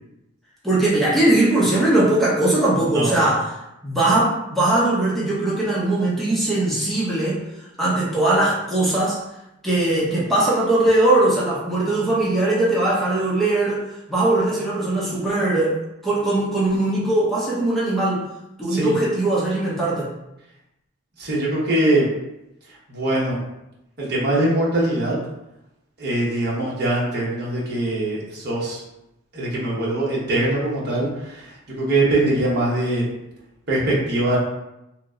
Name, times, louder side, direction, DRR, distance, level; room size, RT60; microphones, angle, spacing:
voice 1, 0.6-3.5 3.8-7.4 7.8-9.2 9.6-15.8 16.0-18.2 18.6-20.1, right 2 dB, ahead, -8 dB, 0.7 m, -20 dB
voice 2, 21.2-22.1 22.9-23.4 24.0-25.2 26.0-28.8 29.3-31.5 31.8-33.0 33.7-34.4, right 1 dB, 55° right, -6 dB, 1.0 m, -22 dB
2.9 x 2.1 x 3.6 m, 0.88 s
head